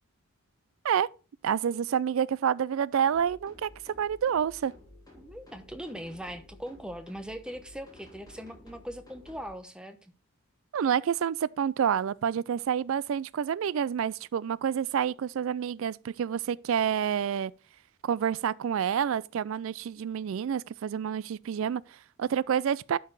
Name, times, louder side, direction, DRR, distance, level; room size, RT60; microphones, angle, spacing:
voice 1, 1.4-4.7 10.7-17.5 18.0-23.0, right 8 dB, 65° right, 0.3 m, -28 dB
sound 1, 3.1-9.5, left 1 dB, 15° left, 3.1 m, -53 dB
voice 2, 5.2-10.1, equal, 5° right, 0.8 m, -40 dB
11.5 x 4.7 x 4.6 m
head